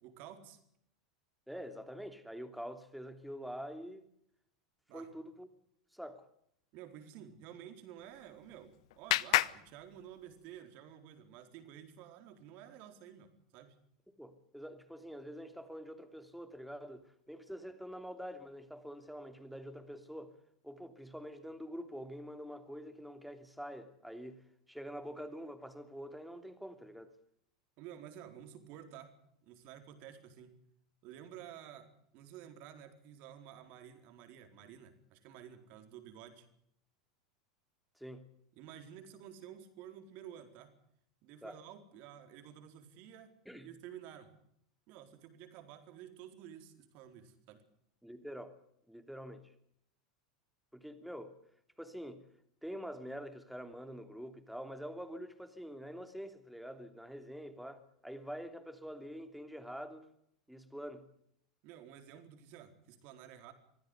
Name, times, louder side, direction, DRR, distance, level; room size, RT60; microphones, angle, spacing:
voice 1, 0.0-0.6 4.9-5.1 6.7-13.8 27.8-29.1 29.4-30.5 31.0-36.5 38.5-40.7 41.2-43.3 43.6-44.3 44.9-47.6 61.6-63.5, right 10 dB, 55° right, 4.3 m, -52 dB
voice 2, 1.5-4.1 4.9-5.5 5.9-6.3 14.1-20.3 20.6-24.4 24.7-27.1 38.0-38.3 41.4-41.6 43.4-43.7 48.0-48.5 48.9-49.5 50.7-51.4 51.8-52.2 52.6-60.1 60.5-61.1, equal, ahead, 3.1 m, -46 dB
Clapping, 8.0-10.6, left 17 dB, 65° left, 0.9 m, -35 dB
24.5 x 16.0 x 8.1 m
hypercardioid pair, 90°, 3 cm